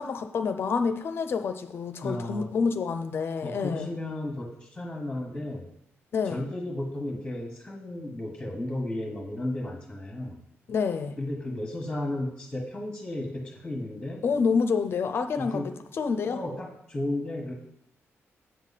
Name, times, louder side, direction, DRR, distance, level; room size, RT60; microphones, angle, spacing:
voice 1, 0.0-3.9 6.1-6.4 10.7-11.2 14.2-15.6 15.9-16.4, left 5 dB, 50° left, 8 dB, 0.5 m, -28 dB
voice 2, 2.0-2.5 3.4-5.7 6.2-10.4 11.2-14.2 15.4-15.7 16.3-17.5, left 1 dB, 10° left, 1 dB, 1.1 m, -34 dB
7.8 x 6.6 x 4.1 m, 0.77 s
wide cardioid pair, 175°, 5 cm